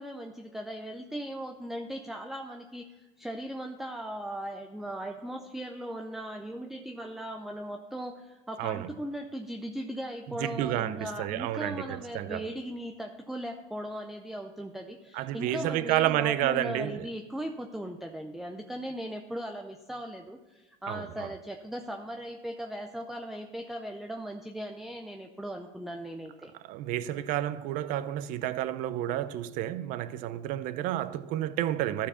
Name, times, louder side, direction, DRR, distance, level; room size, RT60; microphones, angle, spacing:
voice 1, 0.0-26.5, equal, ahead, 0.5 m, -38 dB
voice 2, 8.6-8.9 10.4-12.5 15.1-17.1 20.9-21.3 26.7-32.1, right 13 dB, 60° right, 0.5 m, -30 dB
13.0 x 4.6 x 5.5 m
cardioid pair, 135°, 16 cm